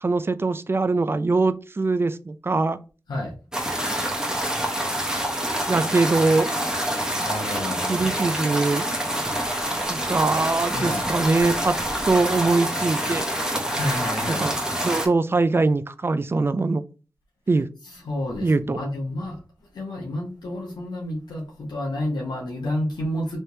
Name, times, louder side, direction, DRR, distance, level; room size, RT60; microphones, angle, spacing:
voice 1, 0.0-2.8 5.7-6.5 7.9-8.8 9.9-11.7 12.0-13.2 14.4-14.5 14.8-16.8 17.5-17.7 18.4-18.8, right 3 dB, 35° right, 0.4 m, -22 dB
sound 1, 3.5-15.1, right 1 dB, 10° right, 1.1 m, -26 dB
voice 2, 7.2-8.1 10.7-11.2 13.7-14.6 17.8-19.4 19.7-23.4, left 1 dB, 80° left, 1.0 m, -30 dB
3.3 x 2.9 x 2.8 m
cardioid pair, 40°, 7 cm